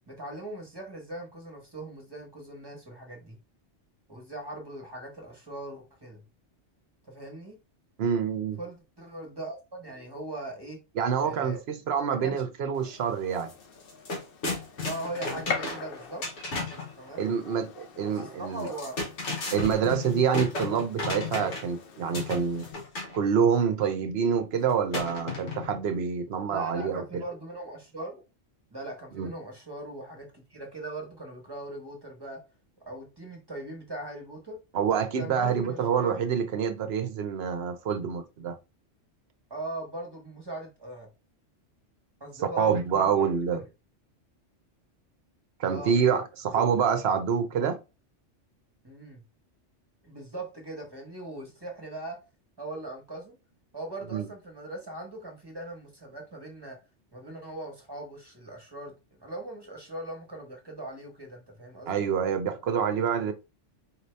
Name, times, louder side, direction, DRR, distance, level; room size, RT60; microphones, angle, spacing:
voice 1, 0.1-3.4 4.1-6.2 7.0-7.6 8.6-10.8 11.2-11.6 12.0-12.4 14.8-16.3 17.0-17.2 17.9-19.1 26.5-28.2 28.7-32.4 32.8-34.6 35.2-36.2 39.5-41.1 42.2-43.6 45.7-46.0 46.5-46.6 48.8-49.2 50.0-52.2 52.6-53.4 53.7-56.8 57.1-62.1, right 1 dB, 20° right, 1.1 m, -40 dB
voice 2, 8.0-8.6 11.0-13.5 17.2-18.7 19.5-22.7 23.1-27.2 29.2-29.3 34.7-38.6 42.6-43.6 45.6-47.8 54.1-54.3 61.9-63.3, right 7 dB, 65° right, 0.8 m, -27 dB
Gunshot gunfire, 12.7-22.7, left 4 dB, 55° left, 0.8 m, -43 dB
sound 1, 13.4-13.5 13.8-16.9 18.6-21.8 22.1-23.2 24.9-25.8, left 3 dB, 75° left, 1.4 m, -34 dB
4.4 x 2.7 x 3.2 m
omnidirectional pair, 1.2 m